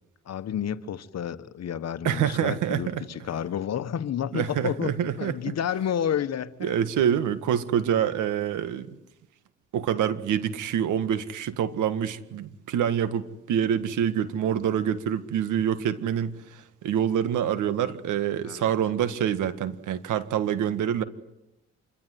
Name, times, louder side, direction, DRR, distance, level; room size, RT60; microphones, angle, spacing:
voice 1, 0.2-6.7 18.4-18.7, left 9 dB, 60° left, 1.4 m, -30 dB
voice 2, 2.0-3.0 4.3-5.4 6.6-8.9 9.7-21.0, right 9 dB, 80° right, 1.9 m, -26 dB
27.0 x 22.5 x 9.6 m
cardioid pair, 90°, 30 cm